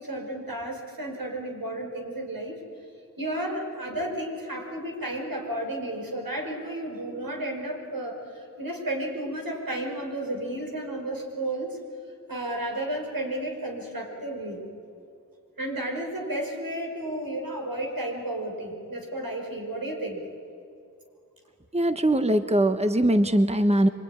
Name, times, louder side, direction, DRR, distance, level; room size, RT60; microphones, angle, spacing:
voice 1, 0.0-2.6 3.2-11.8 12.3-14.6 15.6-20.2, right 1 dB, 85° right, 0 dB, 5.3 m, -32 dB
voice 2, 21.7-23.9, right 1 dB, 20° right, 8 dB, 1.1 m, -21 dB
26.0 x 23.0 x 9.9 m, 2.5 s
wide cardioid pair, 45°, 34 cm